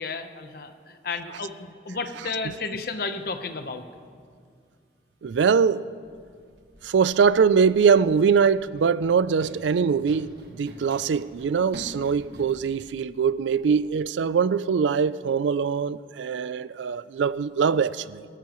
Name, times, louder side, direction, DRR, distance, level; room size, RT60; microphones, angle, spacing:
voice 1, 0.0-3.8, left 4 dB, 55° left, 0.9 m, -32 dB
voice 2, 5.2-5.8 6.8-18.3, right 6 dB, 80° right, 0.4 m, -22 dB
Run, 6.0-14.0, equal, 60° right, 1.6 m, -48 dB
21.5 x 14.0 x 3.1 m
head